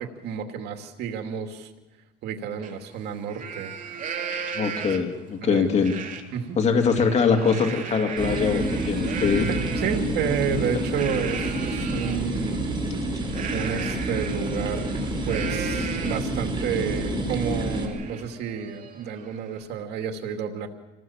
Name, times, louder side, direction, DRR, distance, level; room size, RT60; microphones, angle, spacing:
voice 1, 0.0-1.7 2.2-3.7 4.9-5.1 5.4-5.7 6.3-6.6 9.5-12.9 13.5-15.0 15.3-20.7, right 7 dB, 80° right, 4 dB, 2.6 m, -30 dB
Livestock farm animals working animals, 2.6-2.7 3.1-5.2 5.8-6.2 6.6-12.2 13.3-16.4 16.8-16.9 17.3-19.6, right 6 dB, 50° right, 3.1 m, -36 dB
voice 2, 4.5-5.9 6.6-9.5, left 5 dB, 40° left, 3 dB, 2.7 m, -22 dB
sound 1, 8.2-17.9, right 1 dB, 30° right, 5.3 m, -28 dB
27.5 x 19.0 x 7.4 m, 1.1 s
cardioid pair, 110°, 17 cm